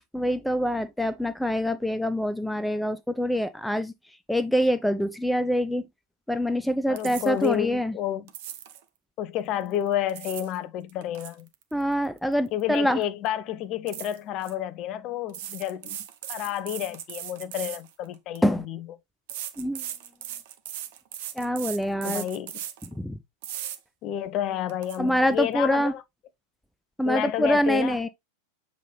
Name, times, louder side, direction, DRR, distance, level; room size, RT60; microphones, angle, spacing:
voice 1, 0.1-3.9 4.3-5.8 6.3-8.0 11.7-13.0 18.4-18.6 19.6-19.8 21.4-22.2 22.9-23.2 25.0-25.9 27.0-28.1, equal, ahead, 0.4 m, -25 dB
voice 2, 6.9-8.3 9.2-11.5 12.5-16.0 16.3-18.8 22.0-22.5 24.0-26.0 27.0-28.0, left 11 dB, 35° left, 0.7 m, -30 dB
sound 1, 7.0-7.5 8.3-8.8 9.9-10.6 10.9-12.8 13.0-13.3 13.9-14.5 15.3-18.4 19.3-22.9 23.4-23.8 24.3-24.4 24.7-25.0, right 11 dB, 50° right, 0.8 m, -38 dB
7.3 x 4.0 x 3.2 m
figure-of-eight pair, 90°, 0 cm